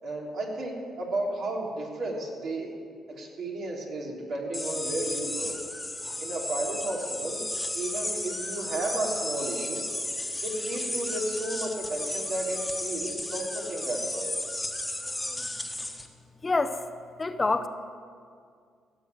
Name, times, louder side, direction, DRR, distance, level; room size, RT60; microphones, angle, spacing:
voice 1, 0.0-2.7 3.2-5.6 6.2-7.4 7.7-9.8 10.4-14.3, right 2 dB, 70° right, -2 dB, 3.3 m, -33 dB
sound 1, 4.5-16.1, left 1 dB, 10° left, 1.4 m, -34 dB
voice 2, 16.4-16.8 17.2-17.7, left 3 dB, 25° left, 9 dB, 0.7 m, -26 dB
16.5 x 7.4 x 7.9 m, 2.2 s
cardioid pair, 90°, 0 cm